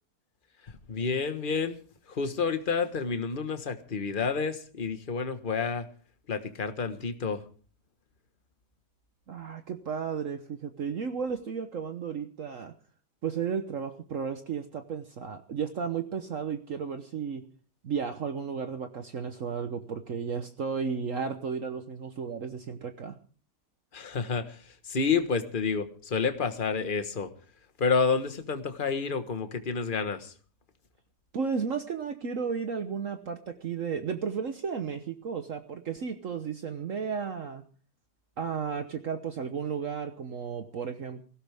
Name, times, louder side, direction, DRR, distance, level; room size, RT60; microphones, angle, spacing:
voice 1, 0.6-1.8 2.1-5.9 6.3-7.4 23.9-27.3 27.8-30.3, left 5 dB, 35° left, 9 dB, 1.4 m, -29 dB
voice 2, 9.3-12.7 13.2-17.4 17.8-23.2 31.3-37.6 38.4-41.2, right 6 dB, 55° right, 8 dB, 1.3 m, -33 dB
18.5 x 16.0 x 3.5 m, 0.41 s
omnidirectional pair, 1.7 m